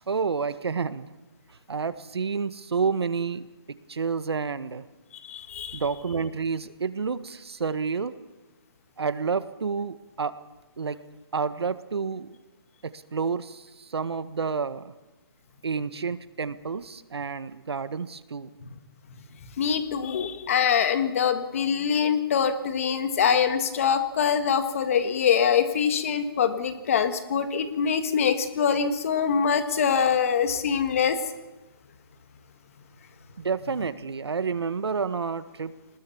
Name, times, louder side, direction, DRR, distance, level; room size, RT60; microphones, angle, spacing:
voice 1, 0.1-1.1 1.7-3.5 3.9-4.8 5.7-8.1 9.0-10.3 10.8-11.0 11.3-12.4 12.8-14.9 15.6-18.5 33.4-35.7, right 5 dB, 75° right, 13 dB, 1.5 m, -29 dB
voice 2, 5.3-5.8 19.6-31.2, left 7 dB, 35° left, 9 dB, 1.8 m, -24 dB
23.0 x 20.0 x 7.2 m, 1.1 s
hypercardioid pair, 170°, 13 cm